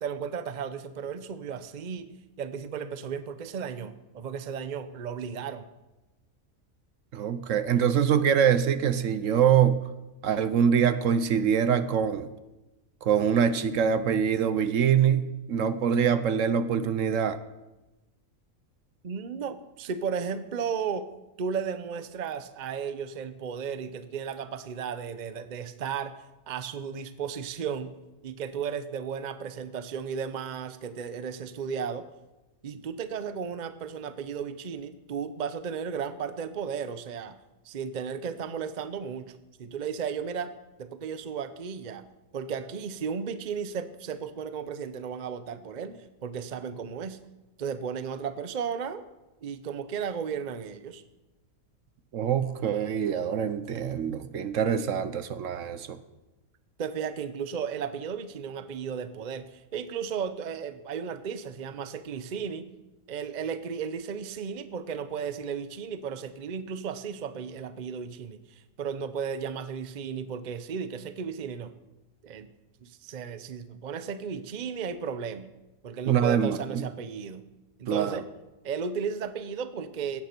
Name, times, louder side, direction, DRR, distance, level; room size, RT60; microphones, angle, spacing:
voice 1, 0.0-5.6 19.0-21.1 21.4-26.1 26.5-27.9 28.2-32.1 32.6-37.4 37.6-40.5 40.8-42.0 42.3-47.2 47.6-49.0 49.4-51.0 56.8-62.7 63.1-71.7 72.2-72.5 72.8-75.5 75.8-77.4 77.8-78.2 78.6-80.2, right 6 dB, 40° right, 11 dB, 0.7 m, -34 dB
voice 2, 7.1-9.8 10.2-12.3 13.0-17.4 52.1-56.0 76.1-76.8 77.9-78.2, right 8 dB, 70° right, 12 dB, 1.1 m, -24 dB
16.0 x 12.0 x 4.4 m, 1.0 s
omnidirectional pair, 1.5 m